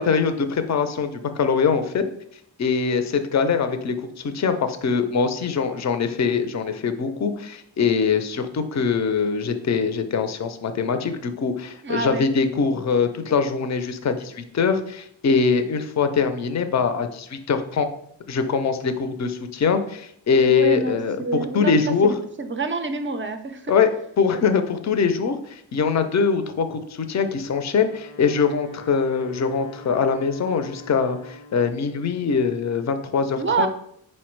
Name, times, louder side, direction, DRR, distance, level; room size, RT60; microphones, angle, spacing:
voice 1, 0.0-2.0 2.6-17.9 18.3-22.1 23.7-23.9 24.2-33.7, left 5 dB, 40° left, 9 dB, 0.4 m, -23 dB
voice 2, 11.8-12.2 20.4-21.8 22.0-23.7 33.4-33.7, right 4 dB, 30° right, 8 dB, 0.4 m, -27 dB
Wind instrument woodwind instrument, 27.7-31.8, left 2 dB, 85° left, 0.8 m, -44 dB
4.4 x 2.1 x 4.4 m, 0.69 s
wide cardioid pair, 70°, 46 cm